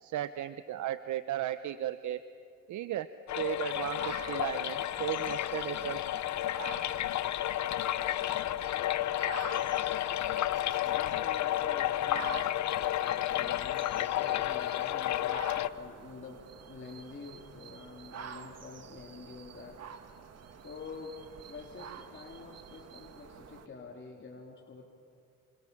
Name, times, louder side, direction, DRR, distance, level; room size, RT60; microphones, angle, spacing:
voice 1, 0.0-2.2 2.7-3.1 3.3-6.0, right 12 dB, 75° right, 12 dB, 0.9 m, -35 dB
sound 1, 3.3-15.7, left 13 dB, 65° left, 0.9 m, -31 dB
sound 2, 3.7-23.7, right 7 dB, 55° right, 2.0 m, -48 dB
voice 2, 10.8-12.5 13.3-19.8 20.6-21.1 21.5-24.8, left 4 dB, 40° left, -2 dB, 3.8 m, -47 dB
29.5 x 26.5 x 7.3 m, 2.4 s
cardioid pair, 90°, 30 cm